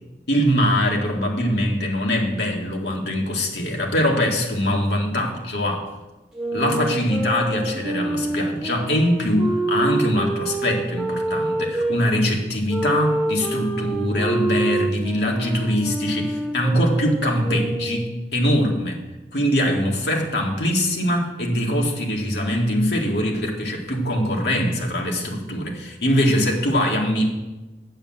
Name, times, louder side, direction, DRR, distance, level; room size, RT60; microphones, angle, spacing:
voice 1, 0.3-5.9 6.5-19.0 19.3-27.2, equal, 75° left, 0 dB, 2.1 m, -22 dB
sound 1, 6.3-12.0 12.7-18.2, right 2 dB, 5° right, 2.1 m, -27 dB
8.9 x 7.6 x 7.4 m, 1.1 s
head